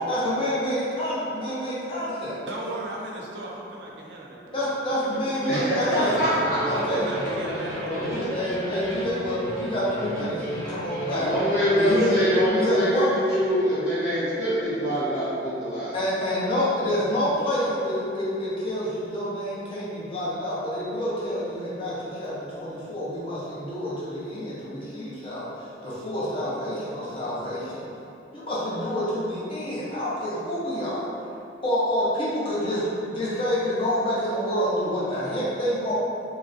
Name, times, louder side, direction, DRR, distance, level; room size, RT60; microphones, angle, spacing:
voice 1, 0.0-2.4 4.5-6.1 6.7-7.4 7.9-11.3 11.8-12.2 12.5-13.1 15.9-25.5 25.8-27.8 28.3-31.0 31.6-35.9, equal, 30° left, -8 dB, 0.5 m, -28 dB
voice 2, 2.4-6.3 6.7-8.4, right 1 dB, 65° right, -2 dB, 0.4 m, -36 dB
voice 3, 5.5-6.6 6.8-6.9 7.8-8.3 11.1-15.9, equal, 90° left, -14 dB, 0.8 m, -24 dB
sound 1, 5.7-12.5, equal, 5° left, 0.9 m, -34 dB
3.0 x 2.4 x 2.5 m, 2.7 s
head